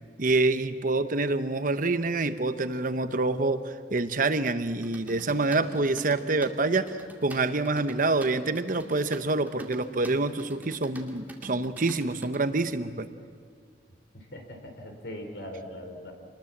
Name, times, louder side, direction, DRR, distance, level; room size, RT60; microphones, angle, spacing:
voice 1, 0.2-13.1, right 3 dB, 50° right, 10 dB, 1.0 m, -27 dB
sound 1, 4.8-12.4, right 1 dB, 10° right, 2.3 m, -44 dB
voice 2, 14.1-16.1, left 1 dB, 80° left, 4 dB, 4.2 m, -40 dB
27.5 x 20.5 x 7.4 m, 2.1 s
head